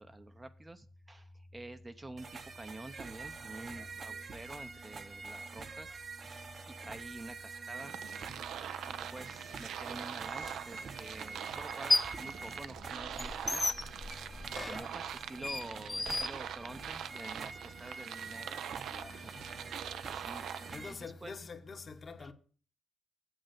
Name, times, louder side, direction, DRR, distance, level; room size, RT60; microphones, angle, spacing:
voice 1, 0.0-6.2 6.7-8.0 8.8-13.8 14.6-18.7 19.1-19.8 20.1-21.3 22.2-22.3, right 2 dB, 20° right, 0.6 m, -49 dB
sound 1, 2.2-20.9, right 4 dB, 45° right, 0.9 m, -47 dB
sound 2, 7.8-20.7, right 9 dB, 75° right, 0.5 m, -43 dB
sound 3, 10.4-10.5 11.6-12.3 12.6-17.0, left 2 dB, 20° left, 0.3 m, -34 dB
voice 2, 18.9-19.5 20.7-22.3, left 4 dB, 40° left, 1.1 m, -46 dB
7.6 x 6.5 x 6.4 m
cardioid pair, 90°, 0 cm